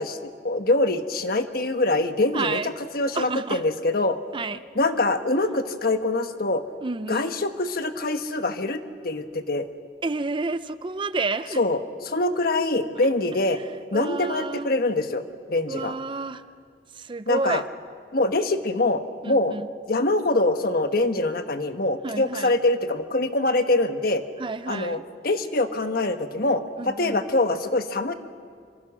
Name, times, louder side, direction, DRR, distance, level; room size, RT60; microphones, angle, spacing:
voice 1, 0.0-4.2 4.7-6.6 7.1-9.7 11.6-13.6 13.9-15.2 15.5-15.9 17.3-17.6 18.1-19.6 19.9-24.2 24.7-25.0 25.2-28.1, left 2 dB, 55° left, 8 dB, 1.3 m, -24 dB
voice 2, 2.3-2.7 3.1-3.6 4.3-4.6 6.8-7.4 10.0-11.6 13.9-14.7 15.7-16.4 16.9-17.6 19.2-19.6 22.0-22.6 24.4-25.0 26.8-27.2, right 3 dB, 30° right, 13 dB, 0.6 m, -30 dB
26.5 x 26.0 x 6.2 m, 2.1 s
head